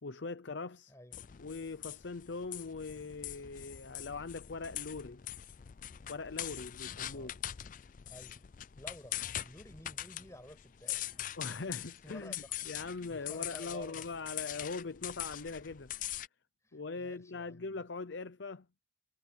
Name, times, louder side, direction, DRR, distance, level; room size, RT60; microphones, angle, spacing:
voice 1, 0.0-0.9 1.4-5.2 6.1-7.3 11.4-12.3 12.6-15.9 16.7-18.7, left 4 dB, 75° left, 0.8 m, -41 dB
voice 2, 0.9-1.2 7.1-7.6 8.1-11.5 12.0-12.5 12.8-14.1 16.6-17.8, left 1 dB, 15° left, 6.0 m, -53 dB
sound 1, 1.1-16.3, left 12 dB, 45° left, 0.4 m, -43 dB
head